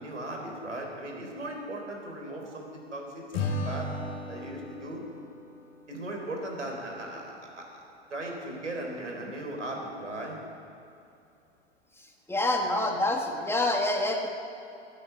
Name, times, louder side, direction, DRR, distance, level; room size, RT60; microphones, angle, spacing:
voice 1, 0.0-3.9 4.3-5.0 5.9-7.8 8.1-10.4, right 1 dB, 90° right, 0 dB, 4.0 m, -37 dB
Acoustic guitar / Strum, 3.3-6.6, left 2 dB, 45° left, 4.6 m, -36 dB
voice 2, 12.3-14.3, left 2 dB, 5° left, 1 dB, 1.7 m, -26 dB
15.5 x 9.5 x 8.6 m, 2.7 s
hypercardioid pair, 100°, 35 cm